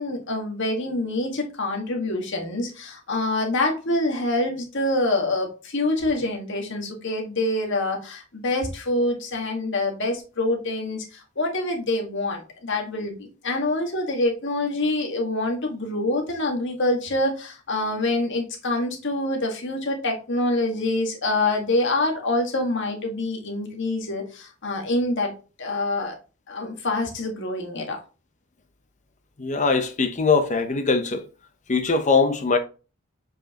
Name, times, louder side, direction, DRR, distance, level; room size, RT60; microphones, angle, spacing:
voice 1, 0.0-25.3 25.6-26.2 26.5-28.0, left 2 dB, 60° left, 1.8 m, -26 dB
voice 2, 29.4-31.3 31.7-32.6, left 4 dB, 35° left, 0.9 m, -21 dB
7.4 x 5.1 x 2.9 m
head